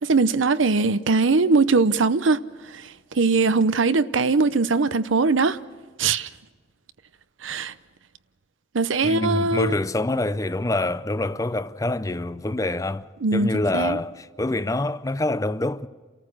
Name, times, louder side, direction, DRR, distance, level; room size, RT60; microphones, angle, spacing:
voice 1, 0.0-2.4 3.1-5.6 6.0-6.3 7.4-7.7 8.7-9.7 13.2-14.0, right 4 dB, 85° right, 0.7 m, -21 dB
voice 2, 9.0-15.9, left 2 dB, 15° left, 0.5 m, -26 dB
30.0 x 14.0 x 6.3 m
head